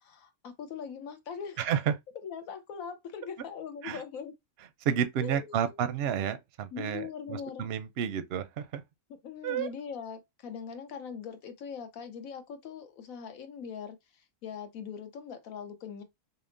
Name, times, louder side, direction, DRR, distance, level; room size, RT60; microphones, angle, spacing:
voice 1, 0.0-1.7 2.1-4.3 5.2-5.9 6.7-7.7 9.2-16.0, left 7 dB, 85° left, 1.2 m, -41 dB
voice 2, 1.6-1.9 3.8-4.0 4.8-7.0 7.3-8.8 9.4-9.7, right 8 dB, 65° right, 0.7 m, -30 dB
5.4 x 2.1 x 2.5 m
omnidirectional pair, 1.4 m